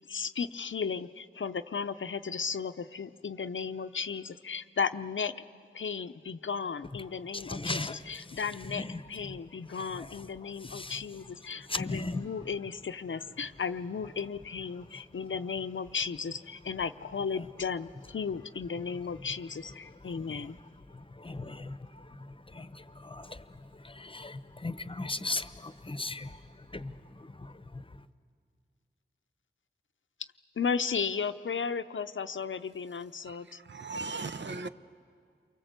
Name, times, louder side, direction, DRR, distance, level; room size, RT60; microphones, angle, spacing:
voice 1, 0.0-5.3 5.7-20.6 30.6-33.6, left 6 dB, 75° left, 0.7 m, -35 dB
voice 2, 7.3-8.4 8.7-9.0 10.0-10.1 10.6-11.0 11.7-12.3 20.2-20.5 20.9-27.8, left 2 dB, 25° left, 0.9 m, -38 dB
voice 3, 33.2-34.7, right 3 dB, 65° right, 0.8 m, -38 dB
29.0 x 23.5 x 8.1 m
wide cardioid pair, 60°, 20 cm